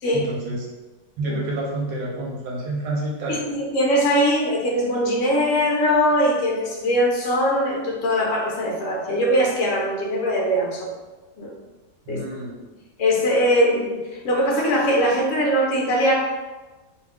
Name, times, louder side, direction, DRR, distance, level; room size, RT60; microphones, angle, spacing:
voice 1, 0.1-0.7 1.2-3.4 12.1-12.7, right 1 dB, 85° right, -3 dB, 1.3 m, -28 dB
voice 2, 3.3-10.9 11.4-11.5 12.1-12.2 13.0-16.2, equal, 65° left, -2 dB, 0.8 m, -21 dB
2.9 x 2.3 x 3.4 m, 1.2 s
omnidirectional pair, 1.9 m